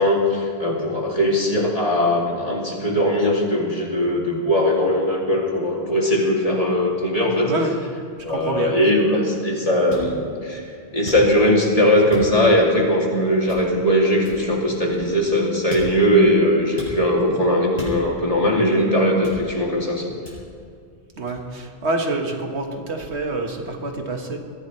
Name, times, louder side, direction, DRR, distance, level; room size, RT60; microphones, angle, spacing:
voice 1, 0.0-7.5 8.2-10.6 10.9-20.0, equal, 35° left, -2 dB, 2.7 m, -19 dB
voice 2, 7.5-7.8 8.3-8.8 21.2-24.4, right 2 dB, 85° right, 3 dB, 1.8 m, -27 dB
sound 1, 9.9-10.1 11.1-11.5 12.1-12.5 13.5-13.8 14.2-15.3 15.7-16.1 16.8-17.0 17.8-18.3 19.2-19.7 20.3-20.6 21.3-21.5, left 1 dB, 55° left, 5.2 m, -37 dB
21.5 x 15.0 x 3.2 m, 2.3 s
omnidirectional pair, 1.1 m